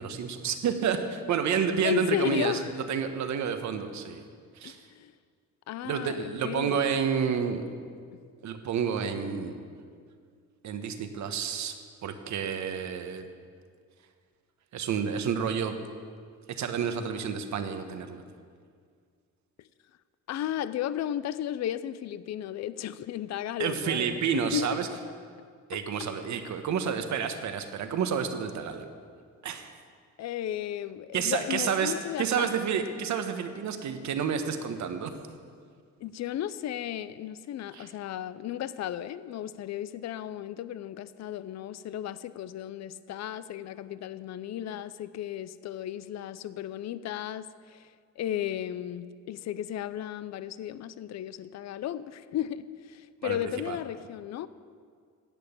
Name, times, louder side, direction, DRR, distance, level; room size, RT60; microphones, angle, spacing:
voice 1, 0.0-4.2 4.5-4.8 5.8-7.6 8.4-9.6 10.6-13.3 14.7-15.8 16.5-18.2 23.6-24.9 25.7-28.9 29.4-29.7 31.1-35.1 37.7-37.9 53.2-53.4 53.7-53.8, right 7 dB, 65° right, 1.2 m, -30 dB
voice 2, 1.8-2.8 4.6-5.1 5.7-6.8 19.6-19.7 20.3-24.8 25.7-25.8 30.2-32.5 36.0-54.5, left 11 dB, 60° left, 0.6 m, -34 dB
10.5 x 7.8 x 8.6 m
cardioid pair, 90°, 30 cm